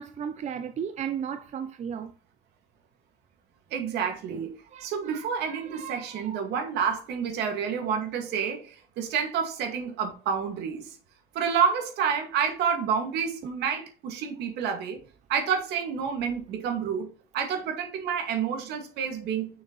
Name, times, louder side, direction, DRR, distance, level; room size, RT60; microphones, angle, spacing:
voice 1, 0.0-2.1 4.3-4.4 4.7-6.4, right 8 dB, 45° right, 0.6 m, -36 dB
voice 2, 3.7-4.6 4.8-11.0 11.3-15.0 15.3-19.5, right 7 dB, 80° right, 2.2 m, -29 dB
6.4 x 6.4 x 3.2 m
cardioid pair, 110°, 17 cm